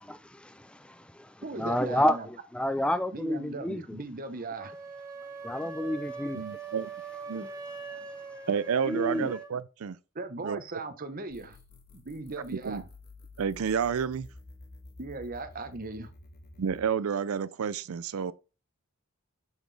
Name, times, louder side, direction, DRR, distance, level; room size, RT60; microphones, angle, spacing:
voice 1, 0.1-4.0 5.4-6.4 8.8-9.3, left 1 dB, 5° left, 0.4 m, -30 dB
voice 2, 1.4-2.3 3.1-4.7 9.1-9.3 10.1-11.6 11.9-12.9 15.0-16.1, right 3 dB, 40° right, 0.9 m, -38 dB
sound 1, 4.6-9.5, right 4 dB, 15° right, 1.2 m, -42 dB
voice 3, 6.3-6.9 7.3-7.4 8.5-10.0 10.4-10.6 12.6-12.8 13.4-14.3 16.6-18.3, right 7 dB, 80° right, 0.4 m, -30 dB
sound 2, 11.3-16.9, left 2 dB, 45° left, 1.2 m, -51 dB
7.1 x 4.0 x 3.3 m
head